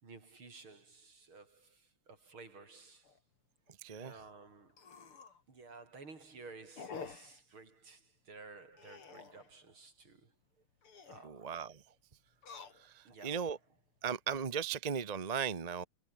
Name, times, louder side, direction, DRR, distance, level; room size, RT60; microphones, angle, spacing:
voice 1, 0.0-3.2 4.0-4.8 5.5-10.3 11.1-11.6 13.1-13.5, right 4 dB, 70° right, 5.4 m, -54 dB
sound 1, 3.0-3.2 3.7-3.8 4.0-4.1 4.7-5.4 5.9-6.2 6.8-7.4 8.7-9.5 10.7-11.3 12.3-13.2 13.8-14.3, left 5 dB, 80° left, 4.0 m, -49 dB
voice 2, 3.8-4.1 11.2-11.8 12.8-13.6 14.0-15.8, right 7 dB, 30° right, 0.7 m, -37 dB
omnidirectional pair, 2.4 m